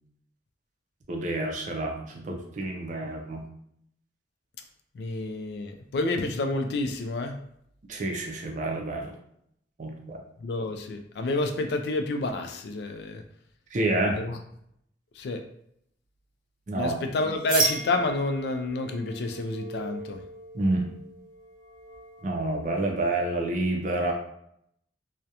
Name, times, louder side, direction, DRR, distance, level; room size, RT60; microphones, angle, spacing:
voice 1, 1.1-3.4 7.9-9.1 9.8-10.2 13.7-14.2 16.7-17.0 20.5-20.9 22.2-24.1, right 2 dB, 45° right, 2 dB, 0.4 m, -28 dB
voice 2, 4.9-7.4 10.4-13.2 14.1-14.4 15.2-15.4 16.8-20.2, left 2 dB, 65° left, 5 dB, 0.3 m, -29 dB
sound 1, 17.5-23.0, right 2 dB, 30° right, 0.9 m, -35 dB
2.4 x 2.1 x 2.8 m, 0.72 s
head